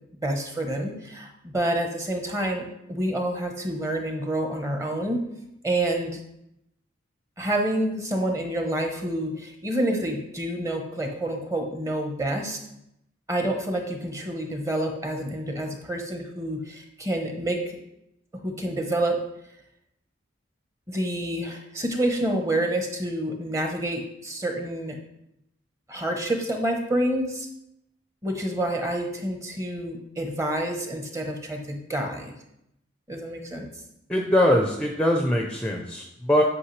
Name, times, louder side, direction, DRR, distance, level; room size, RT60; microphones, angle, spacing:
voice 1, 0.2-5.2 5.6-6.2 7.4-12.6 13.3-17.8 18.4-19.2 20.9-25.0 25.9-27.5 28.2-32.3 33.1-33.7, right 1 dB, 15° right, 3 dB, 0.9 m, -28 dB
voice 2, 34.1-36.4, left 1 dB, 5° left, 1 dB, 0.5 m, -22 dB
8.6 x 5.5 x 3.2 m, 0.81 s
head